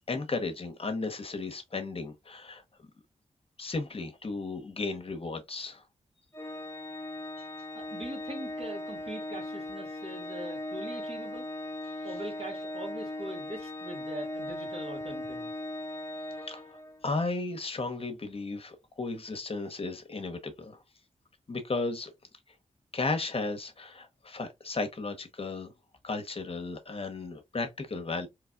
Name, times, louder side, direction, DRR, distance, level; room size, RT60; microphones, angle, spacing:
voice 1, 0.1-2.6 3.6-5.8 16.5-16.6 17.0-20.8 21.5-22.1 22.9-25.7 26.0-28.3, left 3 dB, 45° left, 0.9 m, -34 dB
Organ, 6.3-17.1, left 1 dB, 20° left, 1.2 m, -38 dB
voice 2, 7.7-11.5 12.0-15.5, right 1 dB, 50° right, 1.8 m, -42 dB
3.9 x 3.1 x 2.3 m
cardioid pair, 55°, 13 cm